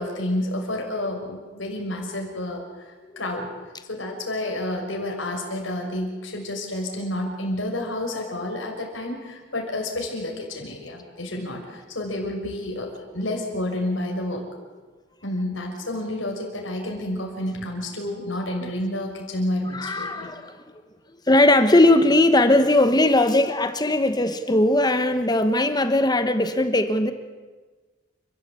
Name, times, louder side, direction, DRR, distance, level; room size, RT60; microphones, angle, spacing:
voice 1, 0.0-2.6 3.2-3.5 3.9-14.4 15.2-20.3, left 1 dB, 90° left, 0 dB, 6.2 m, -29 dB
voice 2, 19.7-20.6 21.3-27.1, left 1 dB, 20° left, 9 dB, 1.4 m, -19 dB
30.0 x 14.0 x 8.5 m, 1.3 s
head